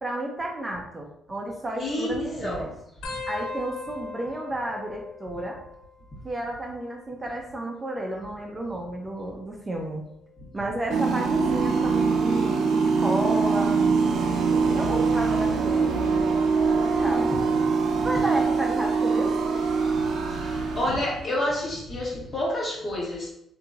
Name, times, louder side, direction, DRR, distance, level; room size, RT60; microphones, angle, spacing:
voice 1, 0.0-2.7 3.3-5.6 6.2-10.0 10.5-13.9 14.7-16.0 16.7-17.3 18.0-19.4, right 1 dB, 25° right, 1 dB, 0.5 m, -32 dB
voice 2, 1.7-2.7 16.9-17.5 17.9-18.0 19.9-20.0 20.3-23.3, left 1 dB, 45° left, -5 dB, 1.3 m, -29 dB
sound 1, 3.0-6.2 6.5-7.1 8.1-9.6 10.2-10.5 11.7-12.1 13.6-13.7, left 4 dB, 80° left, 0.4 m, -40 dB
sound 2, 10.9-21.2, right 4 dB, 80° right, 0.5 m, -23 dB
2.9 x 2.6 x 2.3 m, 0.74 s
cardioid pair, 90°, 0 cm